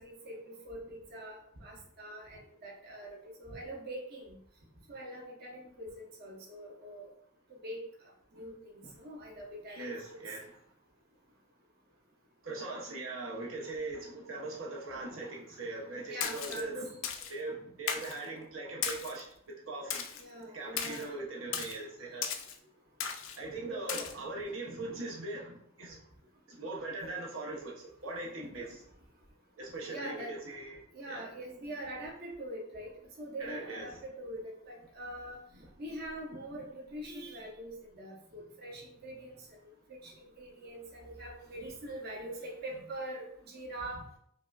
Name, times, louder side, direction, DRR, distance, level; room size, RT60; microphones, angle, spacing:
voice 1, 0.0-4.4 4.9-7.1 7.6-7.8 8.3-9.9 16.1-16.7 20.2-21.1 23.6-24.1 29.9-30.4 30.9-32.9 33.2-35.4 35.8-39.3 39.6-44.1, right 1 dB, 55° right, -2 dB, 0.8 m, -43 dB
voice 2, 9.8-10.4 12.4-16.9 17.3-19.3 19.7-20.0 20.5-22.3 23.4-26.0 26.5-28.8 29.6-30.8 31.1-31.2 33.4-33.9, right 2 dB, 85° right, -3 dB, 0.8 m, -40 dB
Splash splatter, 16.2-16.6 17.0-17.3 17.9-18.2 18.8-19.2 19.9-20.2 20.8-21.1 21.5-21.8 22.2-22.6 23.0-23.4 23.9-24.1, left 7 dB, 75° left, 0.4 m, -36 dB
4.9 x 2.1 x 2.3 m, 0.65 s
head